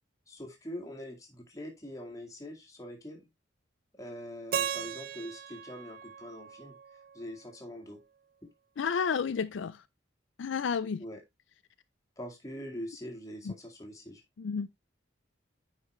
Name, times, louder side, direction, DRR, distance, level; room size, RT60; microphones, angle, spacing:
voice 1, 0.3-3.3 3.9-6.7 7.1-8.0 11.0-11.2 12.2-14.2, equal, 20° left, 2.0 m, -43 dB
Keyboard (musical), 4.5-7.5, right 8 dB, 50° right, 0.6 m, -37 dB
voice 2, 8.8-9.8 10.4-11.0 13.4-13.5 14.4-14.7, left 6 dB, 80° left, 0.4 m, -31 dB
9.3 x 4.9 x 3.1 m
head